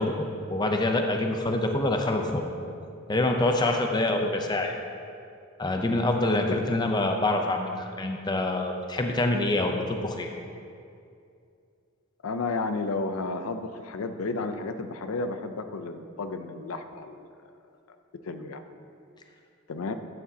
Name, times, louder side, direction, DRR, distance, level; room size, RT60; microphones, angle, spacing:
voice 1, 0.0-2.4 3.1-4.7 5.6-10.3, left 2 dB, 20° left, 3 dB, 0.5 m, -26 dB
voice 2, 12.2-17.3 18.2-18.6 19.7-19.9, left 3 dB, 85° left, 8 dB, 0.5 m, -32 dB
11.5 x 8.3 x 2.8 m, 2.4 s
head